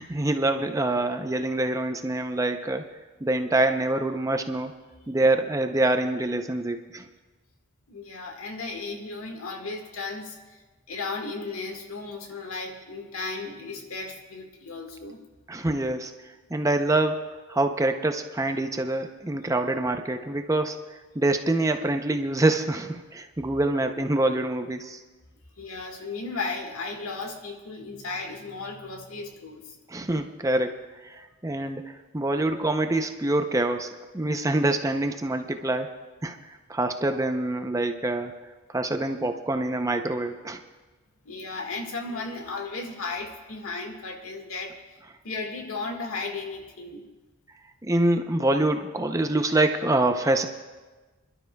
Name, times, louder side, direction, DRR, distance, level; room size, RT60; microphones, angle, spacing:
voice 1, 0.0-2.8 3.2-4.7 5.1-7.1 15.5-16.1 16.5-25.0 29.9-30.8 31.0-35.9 36.2-38.3 38.7-40.6 47.8-50.5, right 2 dB, 15° right, 6 dB, 0.5 m, -25 dB
voice 2, 7.9-10.6 10.9-15.2 25.6-29.8 31.1-31.2 41.2-44.8 45.2-47.0, left 3 dB, 80° left, 3 dB, 1.6 m, -35 dB
28.5 x 12.0 x 2.3 m, 1.2 s
head